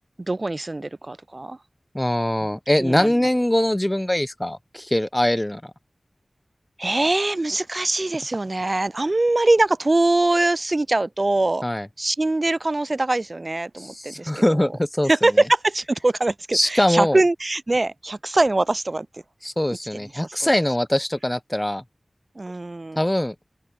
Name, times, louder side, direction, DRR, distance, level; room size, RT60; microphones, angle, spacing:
voice 1, 0.3-1.6 2.4-3.1 6.8-11.6 12.0-14.7 15.1-19.1 22.3-23.0, right 2 dB, 45° right, 1.1 m, -22 dB
voice 2, 1.9-5.7 11.6-11.9 13.8-15.1 16.5-17.2 19.4-21.8 23.0-23.3, left 1 dB, 15° left, 1.0 m, -22 dB
open air
wide cardioid pair, 50°, 0 cm